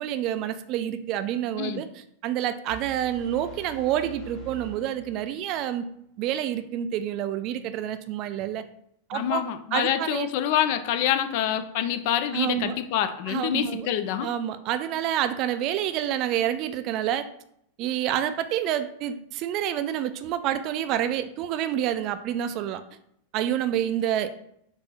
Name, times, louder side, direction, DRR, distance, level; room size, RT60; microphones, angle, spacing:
voice 1, 0.0-1.9 2.2-5.9 6.2-8.6 9.1-9.4 9.7-10.3 12.3-12.8 13.3-13.9 14.2-17.3 17.8-22.8 23.3-24.3, right 11 dB, 40° right, 11 dB, 0.3 m, -28 dB
sound 1, 2.7-5.7, right 3 dB, 30° left, 1.3 m, -44 dB
voice 2, 9.1-14.3, left 10 dB, 50° left, 9 dB, 0.4 m, -26 dB
4.4 x 2.7 x 4.1 m, 0.71 s
figure-of-eight pair, 90°, 0 cm